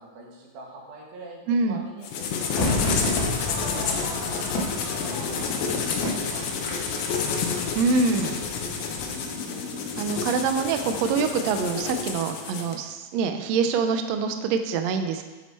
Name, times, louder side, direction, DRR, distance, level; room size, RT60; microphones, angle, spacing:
voice 1, 0.0-3.1 3.5-4.4 4.8-7.8, right 3 dB, 65° right, -1 dB, 2.9 m, -45 dB
voice 2, 1.5-1.8 7.7-8.4 10.0-15.2, right 4 dB, 85° right, 7 dB, 1.5 m, -25 dB
sound 1, 2.0-12.7, left 5 dB, 85° left, 2.6 m, -30 dB
Crowd / Fireworks, 2.6-8.0 8.2-8.3, left 2 dB, 55° left, 2.5 m, -30 dB
sound 2, 4.5-6.7 7.7-10.7 11.7-12.0, left 3 dB, 30° right, 2.8 m, -41 dB
8.7 x 7.4 x 4.4 m, 1.2 s
omnidirectional pair, 3.9 m